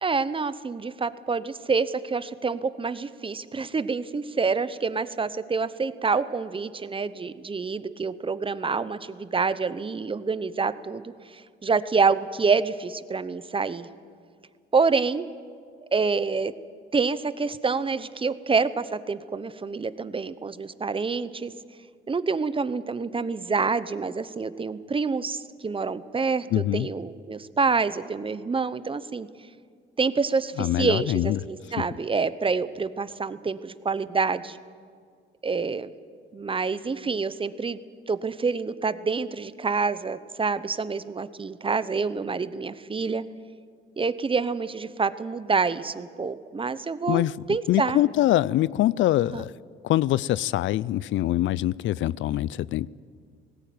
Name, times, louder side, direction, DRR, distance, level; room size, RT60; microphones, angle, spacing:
voice 1, 0.0-11.1 11.6-13.9 14.7-15.3 15.9-16.5 16.9-21.5 22.1-29.3 30.0-34.6 35.4-35.9 36.3-37.8 38.1-43.2 44.0-48.0 49.3-49.4, right 4 dB, 25° right, 15 dB, 0.8 m, -27 dB
voice 2, 26.5-26.9 30.6-31.4 47.1-47.4 47.7-49.5 49.8-52.9, left 14 dB, 75° left, 21 dB, 0.4 m, -24 dB
19.0 x 17.0 x 9.3 m, 2.1 s
cardioid pair, 90°, 20 cm